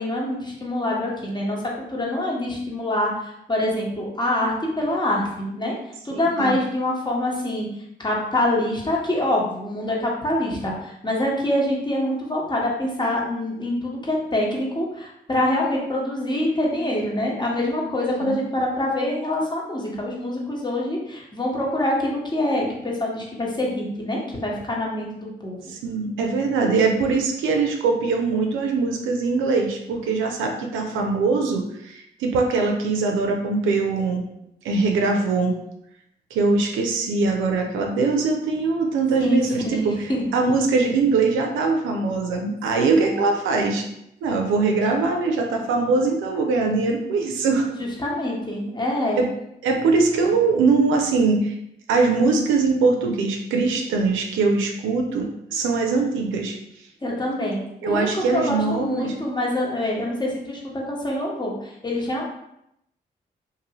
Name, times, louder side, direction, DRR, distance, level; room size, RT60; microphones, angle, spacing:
voice 1, 0.0-1.6 1.9-5.7 6.0-7.7 8.0-25.6 39.2-39.4 39.6-40.3 42.9-43.1 47.8-49.2 57.0-62.3, left 1 dB, 20° left, -3 dB, 1.0 m, -25 dB
voice 2, 6.1-6.6 18.1-18.4 25.7-34.2 34.6-35.6 36.3-43.9 44.2-47.7 49.2-49.3 49.6-51.5 51.9-56.5 57.8-59.1, right 4 dB, 85° right, 2 dB, 0.4 m, -22 dB
2.6 x 2.6 x 2.9 m, 0.79 s
supercardioid pair, 45°, 20 cm